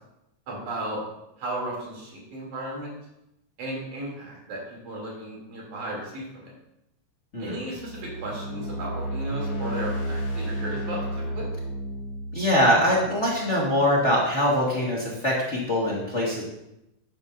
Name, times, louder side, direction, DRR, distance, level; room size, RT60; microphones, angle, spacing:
voice 1, 0.5-1.0 1.4-2.9 3.6-6.5 7.4-11.5, right 1 dB, 85° right, -4 dB, 4.7 m, -35 dB
sound 1, 7.7-13.9, equal, 50° left, 2.4 m, -32 dB
voice 2, 12.3-16.4, equal, 30° left, -5 dB, 1.8 m, -23 dB
12.5 x 9.8 x 2.7 m, 0.86 s
omnidirectional pair, 3.3 m